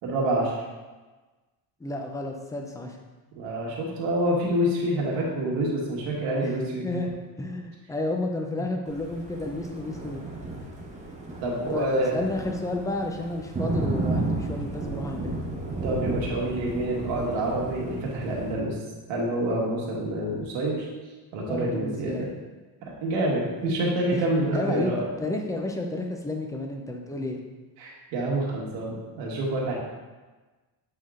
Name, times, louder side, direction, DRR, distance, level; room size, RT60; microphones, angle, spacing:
voice 1, 0.0-0.5 3.3-6.9 11.4-12.2 15.7-18.7 19.1-20.9 21.3-22.2 23.0-25.0 27.8-29.7, right 1 dB, 90° right, -3 dB, 1.8 m, -27 dB
voice 2, 1.8-3.0 6.4-6.5 6.8-7.1 7.4-10.3 11.7-15.3 21.5-22.3 23.6-24.2 24.5-24.9 25.2-27.4, left 2 dB, 10° left, 2 dB, 0.5 m, -31 dB
Thunder, 8.9-18.5, right 2 dB, 15° right, 1.0 m, -33 dB
7.7 x 3.7 x 3.6 m, 1.2 s
cardioid pair, 145°, 43 cm